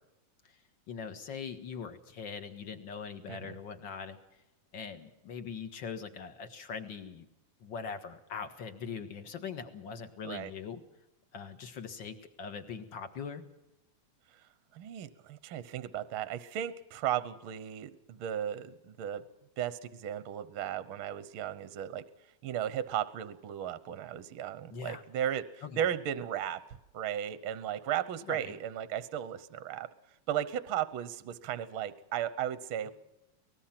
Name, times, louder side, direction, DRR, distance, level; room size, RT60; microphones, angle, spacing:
voice 1, 0.9-4.2 4.7-7.3 7.6-10.8 11.3-13.4 24.7-25.0 25.6-25.9 28.3-28.5 32.8-32.9, left 6 dB, 45° left, 8 dB, 2.0 m, -41 dB
voice 2, 14.7-19.2 19.6-22.0 22.4-25.4 25.7-29.9 30.3-32.9, right 10 dB, 60° right, 14 dB, 1.4 m, -35 dB
23.5 x 20.0 x 6.0 m, 0.91 s
omnidirectional pair, 3.4 m